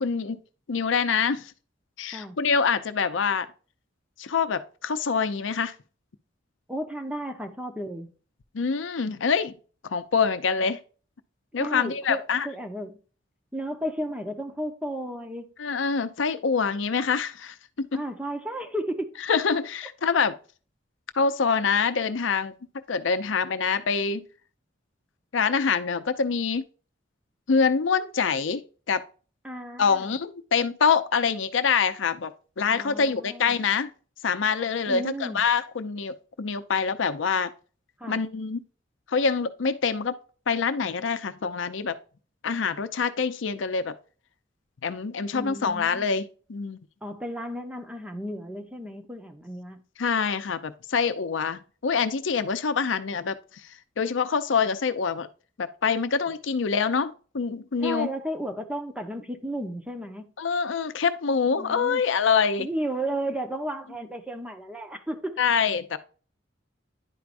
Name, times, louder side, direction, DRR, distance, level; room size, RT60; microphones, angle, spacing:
voice 1, 0.0-0.4 0.7-1.5 2.0-3.5 4.2-5.8 8.5-9.5 9.8-10.8 11.5-12.5 15.6-18.0 19.3-20.4 21.1-22.5 22.9-24.2 25.3-26.6 27.5-29.1 29.8-32.3 32.6-33.9 34.2-37.5 38.1-38.6 39.1-40.2 40.5-42.0 42.4-43.9 44.8-46.8 50.0-53.3 54.0-55.3 55.6-58.1 60.4-62.7 65.4-66.0, left 5 dB, 85° left, 0.6 m, -25 dB
voice 2, 6.7-8.1 11.6-13.0 13.5-15.5 17.9-19.2 29.4-30.2 32.6-33.6 34.9-35.4 38.0-38.2 45.3-46.1 47.0-49.8 56.3-56.4 57.8-60.3 61.5-62.0 62.6-65.4, right 1 dB, 5° right, 0.8 m, -33 dB
10.5 x 4.7 x 2.5 m
head